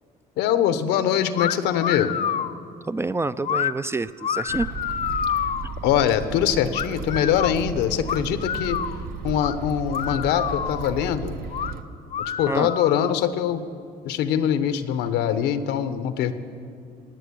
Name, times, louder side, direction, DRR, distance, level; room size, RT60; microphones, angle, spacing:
voice 1, 0.4-2.1 5.8-8.8 9.2-11.4 12.2-13.6 14.0-16.3, left 9 dB, 90° left, 11 dB, 1.0 m, -23 dB
sound 1, 1.4-1.5 1.8-2.6 3.4-3.7 4.2-5.7 6.7-7.6 8.1-9.0 9.4-9.5 9.9-11.0 11.5-11.7 12.1-13.2, left 8 dB, 45° left, 0.6 m, -28 dB
voice 2, 2.9-4.7 12.5-12.7, right 3 dB, 15° right, 14 dB, 0.3 m, -27 dB
sound 2, 4.5-11.8, right 5 dB, 60° right, 1.0 m, -34 dB
18.0 x 7.8 x 9.8 m, 2.3 s
cardioid pair, 110°, 17 cm